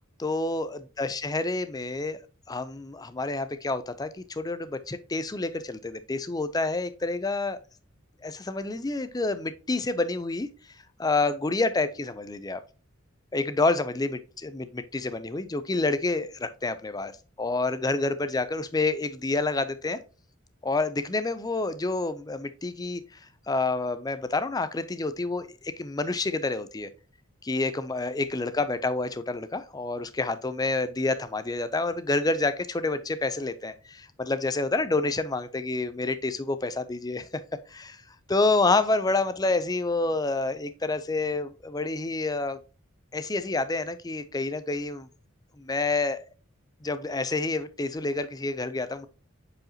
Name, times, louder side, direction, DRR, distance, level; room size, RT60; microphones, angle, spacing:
voice 1, 0.2-2.2 2.5-7.6 8.2-10.5 11.0-12.6 13.3-17.1 17.4-20.0 20.6-23.2 23.5-26.9 27.4-37.3 37.7-38.0 38.3-42.6 43.1-45.1 45.6-46.2 46.8-49.1, left 3 dB, 20° left, 0.5 m, -28 dB
7.7 x 4.9 x 2.8 m
head